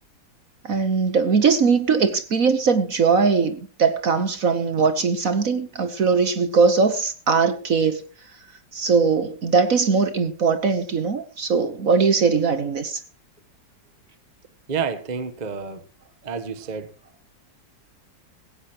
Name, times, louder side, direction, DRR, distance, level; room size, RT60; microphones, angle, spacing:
voice 1, 0.6-8.0 8.7-13.0, right 5 dB, 50° right, 1.4 m, -20 dB
voice 2, 14.7-15.8 16.2-16.9, right 6 dB, 25° right, 1.1 m, -29 dB
17.0 x 16.5 x 3.1 m
omnidirectional pair, 2.0 m